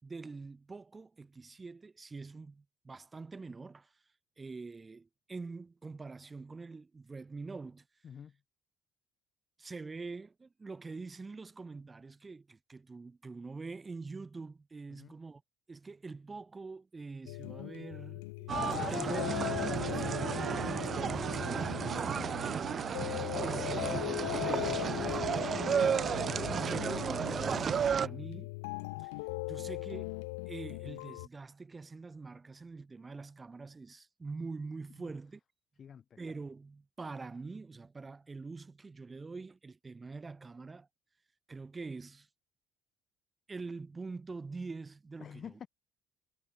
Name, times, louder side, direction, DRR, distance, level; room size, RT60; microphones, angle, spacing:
voice 1, 0.0-3.9 4.4-7.8 9.6-15.4 15.7-28.5 29.0-29.1 29.5-30.1 30.5-35.4 36.2-40.9 41.5-42.3 43.5-45.4, right 4 dB, 25° right, 2.5 m, -45 dB
voice 2, 8.0-8.4 14.9-15.1 22.1-22.4 26.4-26.6 35.0-35.1 35.8-36.2 45.2-45.7, left 7 dB, 45° left, 7.4 m, -49 dB
sound 1, 17.3-31.3, left 27 dB, 75° left, 1.3 m, -39 dB
sound 2, 18.5-28.1, right 7 dB, 45° right, 0.5 m, -33 dB
hypercardioid pair, 60°, 0 cm